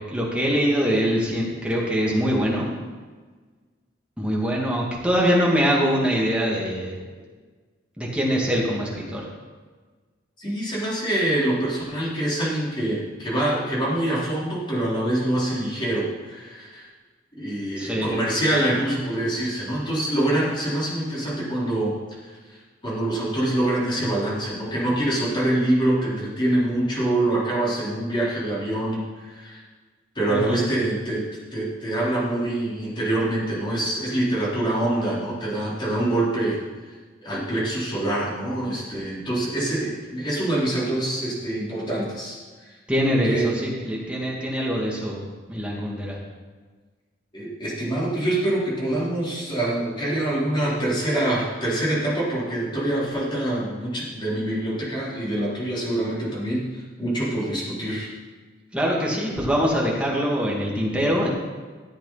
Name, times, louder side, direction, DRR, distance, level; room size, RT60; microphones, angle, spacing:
voice 1, 0.1-2.7 4.2-7.0 8.0-9.3 17.8-18.1 30.3-30.7 42.9-45.2 45.5-46.2 58.7-61.3, equal, 5° right, -4 dB, 2.4 m, -23 dB
voice 2, 10.4-16.9 17.4-21.9 22.2-22.6 22.8-29.6 30.1-31.2 31.5-36.6 37.2-42.8 43.2-43.6 47.3-58.1, right 1 dB, 25° left, -7 dB, 4.1 m, -25 dB
14.0 x 8.6 x 4.2 m, 1.4 s
head